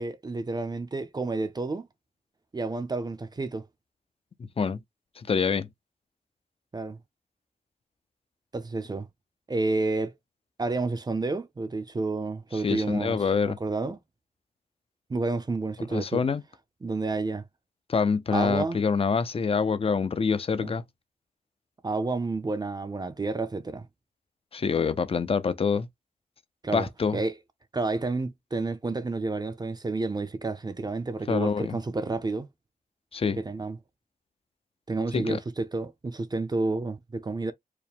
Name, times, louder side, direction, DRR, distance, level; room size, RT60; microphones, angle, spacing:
voice 1, 0.0-1.9 2.5-3.7 6.7-7.0 8.5-9.1 9.5-10.1 10.6-14.0 15.1-16.2 16.8-17.4 18.3-18.8 20.6-20.7 21.8-23.9 26.6-27.3 27.7-32.5 33.4-33.8 34.9-37.5, right 3 dB, 25° right, 0.5 m, -30 dB
voice 2, 5.2-5.7 12.5-13.6 15.9-16.4 17.9-20.8 24.5-25.9 26.7-27.2 31.3-31.8 33.1-33.4 35.1-35.4, left 5 dB, 35° left, 0.5 m, -26 dB
4.7 x 2.1 x 3.5 m
wide cardioid pair, 155°, 16 cm